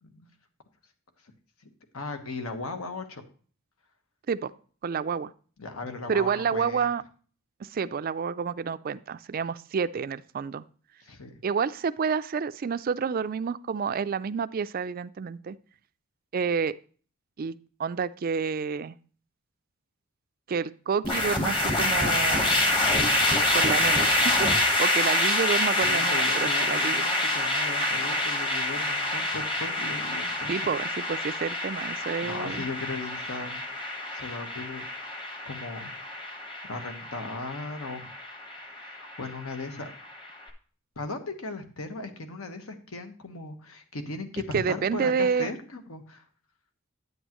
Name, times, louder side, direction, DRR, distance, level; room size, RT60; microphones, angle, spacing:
voice 1, 1.9-3.2 5.6-6.9 11.0-11.4 25.7-30.5 32.0-33.6 34.1-34.9 35.4-35.9 36.7-38.1 38.6-39.9 41.0-46.2, left 3 dB, 80° left, 7 dB, 1.3 m, -37 dB
voice 2, 4.8-5.3 6.1-7.0 7.6-10.6 11.4-15.6 16.3-16.7 17.4-19.0 20.5-22.5 23.5-27.0 30.5-32.6 44.5-45.5, right 6 dB, 40° right, 14 dB, 0.3 m, -29 dB
sound 1, 21.0-40.3, left 1 dB, 25° left, 1.2 m, -27 dB
9.3 x 8.2 x 3.0 m, 0.42 s
head